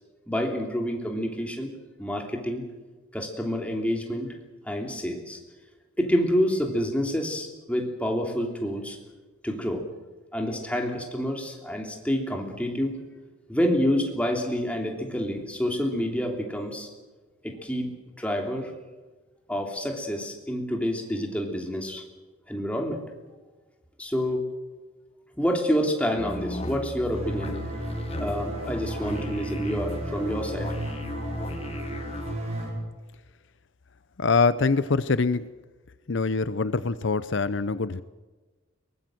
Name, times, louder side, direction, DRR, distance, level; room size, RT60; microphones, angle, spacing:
voice 1, 0.3-1.7 2.0-2.6 3.1-4.3 4.7-5.4 6.0-9.0 9.4-9.8 10.3-12.9 13.5-16.9 17.4-17.9 18.2-18.7 19.5-22.0 22.5-23.0 24.0-24.4 25.4-27.5 28.2-30.7, equal, 5° left, 1 dB, 3.1 m, -28 dB
sound 1, 26.2-32.4, left 1 dB, 30° left, 1.2 m, -35 dB
sound 2, 27.1-32.7, right 1 dB, 30° right, 5.9 m, -35 dB
voice 2, 34.2-35.5 36.1-38.0, left 4 dB, 60° left, 14 dB, 0.6 m, -24 dB
22.5 x 19.5 x 7.8 m, 1.2 s
head